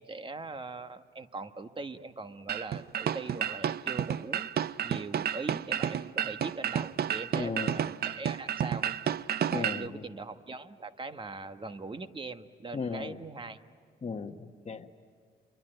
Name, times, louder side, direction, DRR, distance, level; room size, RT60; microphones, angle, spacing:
voice 1, 0.0-4.5 4.8-9.0 9.5-13.6, right 3 dB, 25° right, 9 dB, 1.3 m, -41 dB
sound 1, 2.5-9.9, right 9 dB, 50° right, 0.6 m, -31 dB
voice 2, 7.3-7.8 9.5-10.0 12.7-13.2 14.0-14.9, left 5 dB, 35° left, 5 dB, 1.4 m, -36 dB
27.5 x 23.0 x 9.1 m, 2.1 s
cardioid pair, 90°, 20 cm